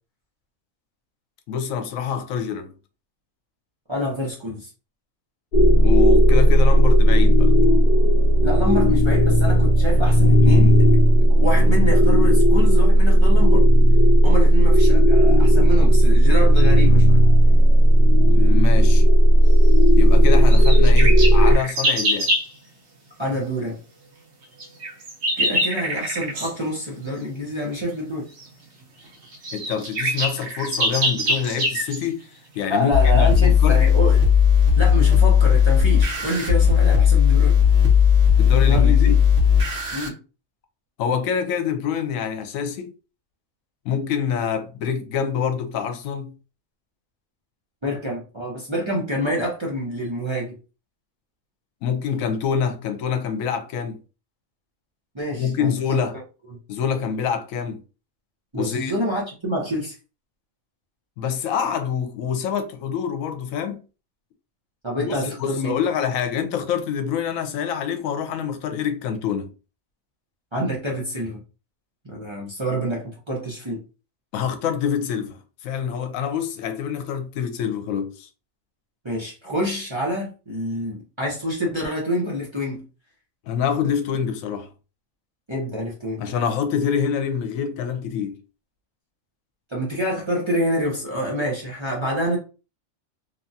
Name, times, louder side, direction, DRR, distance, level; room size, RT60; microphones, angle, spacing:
voice 1, 1.5-2.7 5.8-7.5 18.3-19.0 20.0-22.3 29.5-32.3 32.5-33.8 38.4-39.1 41.0-42.9 43.8-46.3 51.8-54.0 55.4-56.1 56.7-57.8 58.5-58.9 61.2-63.8 65.1-69.5 74.3-75.4 75.6-78.3 83.5-84.7 86.2-88.4, left 7 dB, 85° left, 1.0 m, -26 dB
voice 2, 3.9-4.7 8.4-10.8 11.3-13.7 14.2-17.1 23.2-23.8 25.4-28.3 32.7-34.2 34.8-37.5 38.7-39.1 39.9-40.2 47.8-50.5 55.1-56.0 58.5-60.0 64.8-65.8 70.5-71.4 72.0-73.8 79.0-82.8 85.5-86.2 89.7-92.4, equal, 30° right, 0.6 m, -27 dB
sound 1, 5.5-21.6, equal, 60° left, 0.4 m, -13 dB
sound 2, 20.5-22.5 24.6-26.6 28.4-28.5 29.0-29.1 29.3-32.0, right 1 dB, 80° right, 1.2 m, -24 dB
sound 3, 32.9-40.1, left 7 dB, 55° right, 1.0 m, -16 dB
2.9 x 2.3 x 2.6 m
omnidirectional pair, 1.4 m